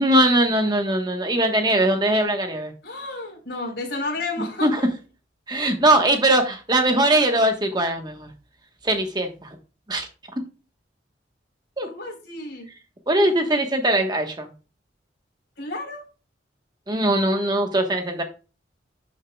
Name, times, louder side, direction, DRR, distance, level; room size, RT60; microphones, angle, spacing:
voice 1, 0.0-2.7 4.6-4.8 5.5-8.3 8.8-9.6 9.9-10.1 11.8-11.9 13.1-14.5 16.9-18.2, right 1 dB, 20° right, 5 dB, 1.2 m, -21 dB
voice 2, 2.8-4.7 11.8-12.7 15.6-16.0, left 2 dB, 60° left, 1 dB, 4.1 m, -31 dB
12.5 x 6.5 x 2.3 m, 0.33 s
head